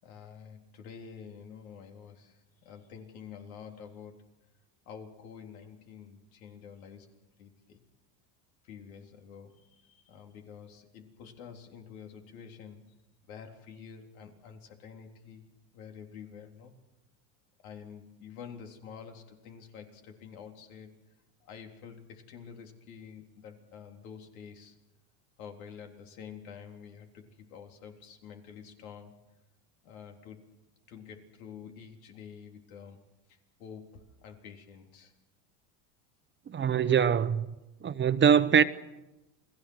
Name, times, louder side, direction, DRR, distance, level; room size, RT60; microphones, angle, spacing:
voice 1, 0.0-4.3 4.9-7.8 8.6-12.8 13.3-15.5 15.7-16.7 17.6-20.9 21.4-24.8 25.4-29.1 29.8-30.5 30.9-35.1, left 7 dB, 90° left, 3.7 m, -48 dB
voice 2, 36.5-37.5 37.8-38.6, right 7 dB, 25° right, 1.0 m, -23 dB
29.5 x 20.0 x 6.4 m
supercardioid pair, 115°, 41 cm